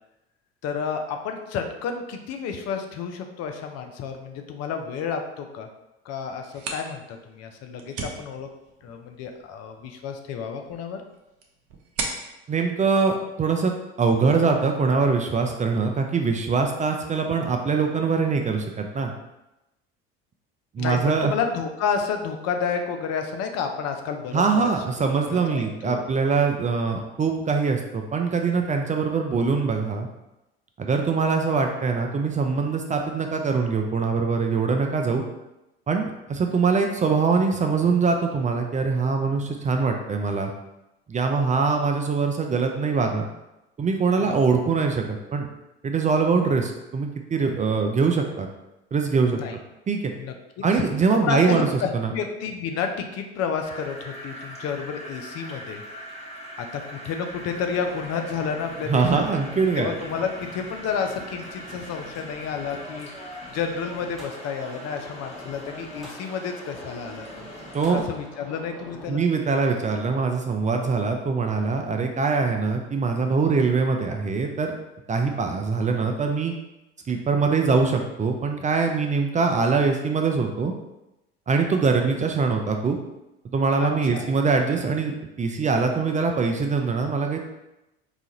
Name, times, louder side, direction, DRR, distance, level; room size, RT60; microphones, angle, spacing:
voice 1, 0.6-5.7 6.0-8.5 8.8-11.0 20.8-24.7 25.0-26.1 44.2-44.3 49.3-49.6 50.1-50.3 50.7-50.8 51.2-55.8 56.6-59.2 59.8-63.1 63.5-67.5 67.9-69.2 83.8-84.3, left 6 dB, 55° left, 5 dB, 0.6 m, -30 dB
sound 1, 6.3-13.9, right 4 dB, 50° right, 0.7 m, -39 dB
voice 2, 12.5-19.1 20.7-21.3 24.3-30.1 30.8-35.2 35.9-40.5 41.1-43.3 43.8-45.5 45.8-48.5 48.9-49.4 49.9-50.1 50.6-51.7 51.9-52.1 58.9-59.9 67.7-68.0 69.1-74.7 75.1-76.5 77.1-80.7 81.5-83.0 83.5-87.4, right 4 dB, 25° right, 4 dB, 0.4 m, -23 dB
sound 2, 53.6-68.0, equal, 20° left, 0.8 m, -42 dB
sound 3, 57.3-69.1, equal, ahead, 1.2 m, -44 dB
3.9 x 2.4 x 2.9 m, 0.94 s
hypercardioid pair, 70°, 30 cm